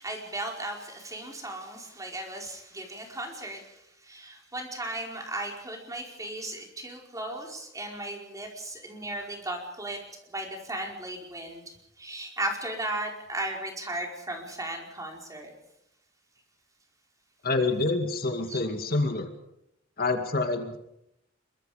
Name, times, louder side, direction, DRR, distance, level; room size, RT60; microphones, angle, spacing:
voice 1, 0.0-10.0 10.3-15.5 18.5-18.6, right 1 dB, 20° right, 1 dB, 4.9 m, -36 dB
voice 2, 17.4-19.3 20.0-20.8, left 3 dB, 50° left, 5 dB, 2.2 m, -27 dB
26.0 x 23.5 x 5.2 m, 0.81 s
head